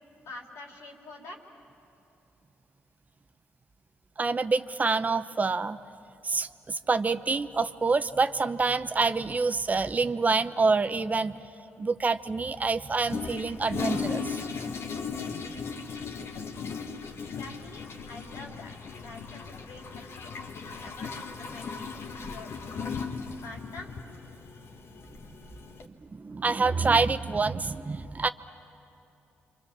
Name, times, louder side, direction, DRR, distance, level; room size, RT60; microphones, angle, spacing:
voice 1, 0.3-1.4 17.2-23.0 23.4-23.9, left 2 dB, 80° left, 1 dB, 3.5 m, -46 dB
voice 2, 4.2-5.8 6.2-11.3 11.8-14.4 26.1-28.3, right 4 dB, 35° right, 12 dB, 0.7 m, -26 dB
Toilet flush, 13.1-25.9, left 5 dB, 65° left, 1.7 m, -37 dB
28.0 x 25.0 x 7.3 m, 2.9 s
supercardioid pair, 60°, 5 cm